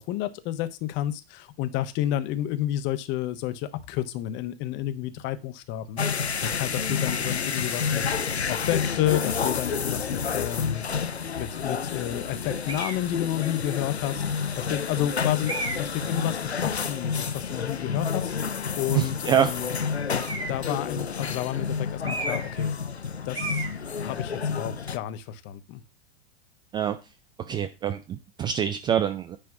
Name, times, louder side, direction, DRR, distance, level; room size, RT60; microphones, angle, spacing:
voice 1, 0.0-6.0 6.4-10.8 11.4-19.8 20.5-22.7 23.2-23.6 24.0-25.8, left 13 dB, 35° left, 11 dB, 1.0 m, -31 dB
sound 1, 6.0-25.0, left 6 dB, 90° left, 0.6 m, -29 dB
sound 2, 12.7-13.1 13.9-14.0 15.5-16.0 20.1-20.7 22.0-22.6 22.9-23.1 23.3-23.8, right 2 dB, 80° right, 1.9 m, -33 dB
voice 2, 18.9-19.5 26.7-27.0 27.5-29.4, right 9 dB, 15° right, 10 dB, 0.4 m, -25 dB
10.0 x 3.4 x 6.9 m, 0.28 s
figure-of-eight pair, 95°, 31 cm